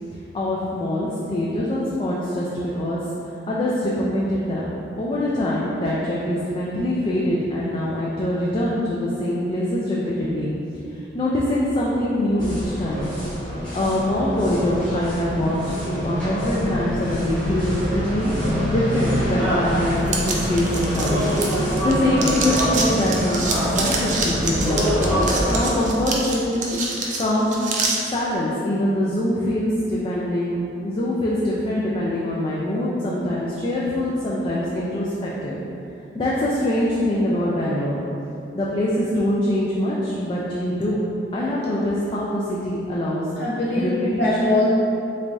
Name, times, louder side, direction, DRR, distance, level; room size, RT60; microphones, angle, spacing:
voice 1, 0.3-2.5 2.7-3.0 3.5-4.7 5.0-10.5 10.9-13.1 13.7-15.6 15.8-21.2 21.8-26.8 27.2-27.5 28.1-35.6 36.1-38.0 38.5-41.0 41.3-43.3 43.8-44.6, left 1 dB, 30° left, -6 dB, 0.3 m, -24 dB
sound 1, 12.4-25.6, equal, 5° left, 1.0 m, -25 dB
sound 2, 20.1-21.9 22.2-28.0, right 4 dB, 45° right, 0.4 m, -27 dB
voice 2, 43.4-44.7, left 2 dB, 65° left, -8 dB, 1.0 m, -22 dB
3.4 x 3.2 x 2.5 m, 2.7 s
head